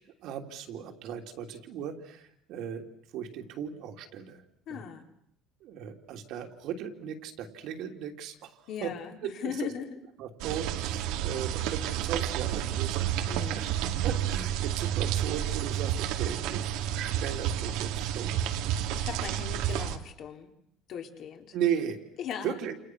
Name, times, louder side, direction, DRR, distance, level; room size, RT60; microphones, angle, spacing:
voice 1, 0.0-2.8 3.1-4.4 4.7-4.8 5.6-8.9 9.2-9.7 10.2-18.3 21.5-22.0 22.4-22.7, right 9 dB, 60° right, 3 dB, 3.2 m, -37 dB
voice 2, 4.7-5.1 8.7-10.0 13.3-13.8 18.9-20.5 20.9-21.6 22.2-22.6, left 8 dB, 50° left, 3 dB, 3.6 m, -38 dB
sound 1, 10.4-20.0, right 11 dB, 80° right, 2.0 m, -30 dB
29.5 x 28.5 x 6.3 m, 0.68 s
cardioid pair, 155°, 0 cm